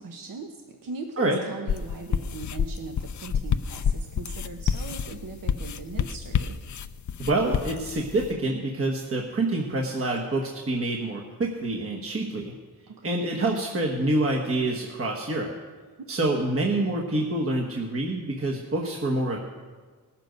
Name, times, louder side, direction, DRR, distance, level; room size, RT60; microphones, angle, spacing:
voice 1, 0.0-6.6 12.9-13.3 16.2-16.3, right 4 dB, 60° right, 4 dB, 1.0 m, -39 dB
sound 1, 1.7-8.3, left 8 dB, 50° left, 0.5 m, -28 dB
voice 2, 7.2-12.5 13.0-15.5 16.1-19.4, right 2 dB, 35° right, -1 dB, 1.3 m, -27 dB
19.0 x 7.5 x 5.2 m, 1.4 s
wide cardioid pair, 125°, 38 cm